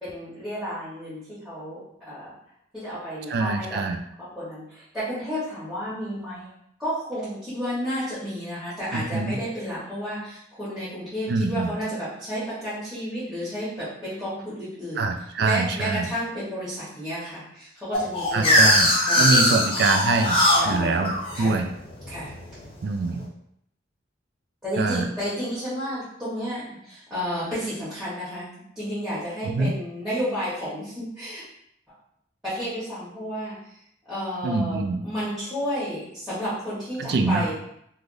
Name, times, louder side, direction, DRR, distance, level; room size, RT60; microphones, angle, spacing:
voice 1, 0.0-2.3 2.7-3.8 4.2-6.5 6.8-15.1 15.4-18.7 19.1-19.5 20.3-21.0 21.3-21.6 22.1-22.3 24.6-31.4 31.9-32.0 32.4-33.8 34.1-37.6, equal, 5° right, -14 dB, 1.1 m, -32 dB
voice 2, 3.3-4.0 8.9-9.4 11.3-11.7 15.0-16.1 18.3-20.4 20.7-21.7 22.8-23.3 24.8-25.1 29.4-29.7 34.4-35.0 37.0-37.5, right 3 dB, 60° right, 6 dB, 0.3 m, -24 dB
sound 1, 17.9-22.7, left 1 dB, 30° left, 0.6 m, -21 dB
3.3 x 2.3 x 2.6 m, 0.74 s
head